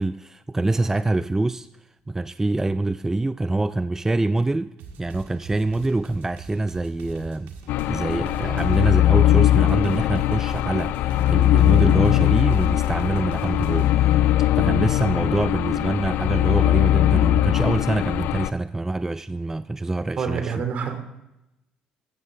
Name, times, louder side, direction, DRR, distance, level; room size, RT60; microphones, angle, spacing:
voice 1, 0.0-1.7 2.1-4.7 5.0-7.5 7.9-20.6, right 2 dB, 15° right, 0.3 m, -25 dB
sound 1, 4.8-8.9 9.5-13.9, right 5 dB, 75° right, 1.8 m, -43 dB
sound 2, 7.7-18.5, left 13 dB, 70° left, 0.4 m, -20 dB
voice 2, 20.2-21.0, right 6 dB, 55° right, 2.5 m, -27 dB
14.5 x 14.0 x 3.7 m
supercardioid pair, 65°, 3 cm